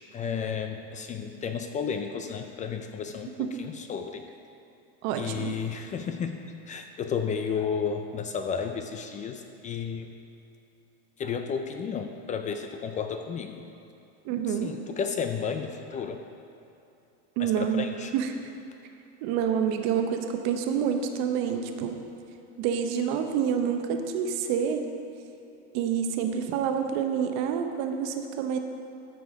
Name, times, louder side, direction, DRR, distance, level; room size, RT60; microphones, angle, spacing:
voice 1, 0.1-4.2 5.2-6.4 6.7-10.1 11.2-13.6 14.5-16.2 17.4-18.1, left 6 dB, 25° left, 6 dB, 0.4 m, -32 dB
voice 2, 5.0-5.5 14.2-14.7 17.4-17.8 18.1-18.3 19.2-22.0 22.6-24.8 25.7-28.6, right 8 dB, 60° right, 5 dB, 0.9 m, -27 dB
13.5 x 4.7 x 5.1 m, 2.8 s
supercardioid pair, 135°, 32 cm